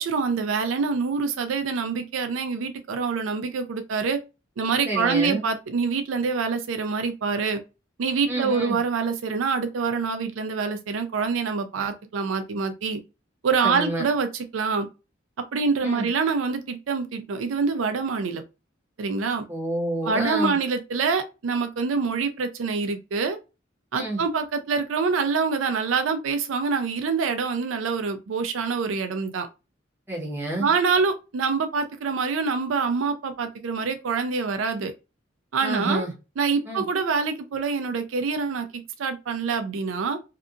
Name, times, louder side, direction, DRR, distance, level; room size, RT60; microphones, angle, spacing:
voice 1, 0.0-4.2 4.6-7.6 8.0-13.0 13.4-14.9 15.5-18.4 19.0-19.4 20.0-23.4 23.9-29.5 30.6-34.9 35.5-36.0 36.4-38.7 39.0-40.2, right 5 dB, 85° right, 0.4 m, -25 dB
voice 2, 4.9-5.4 8.3-8.8 13.6-14.0 15.8-16.1 19.5-20.5 23.9-24.2 30.1-30.7 35.6-36.1 36.7-36.8, right 1 dB, 10° right, 0.9 m, -28 dB
2.7 x 2.4 x 2.4 m
head